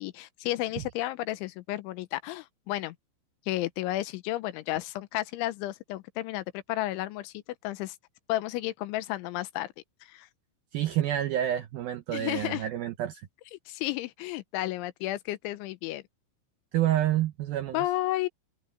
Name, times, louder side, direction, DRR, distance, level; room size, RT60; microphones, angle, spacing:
voice 1, 0.0-3.0 3.5-8.0 8.3-9.7 10.0-10.3 12.1-12.7 13.7-16.0 17.7-18.3, left 16 dB, 85° left, 3.3 m, -32 dB
voice 2, 10.7-13.3 16.7-17.8, right 12 dB, 80° right, 2.1 m, -28 dB
open air
omnidirectional pair, 5.4 m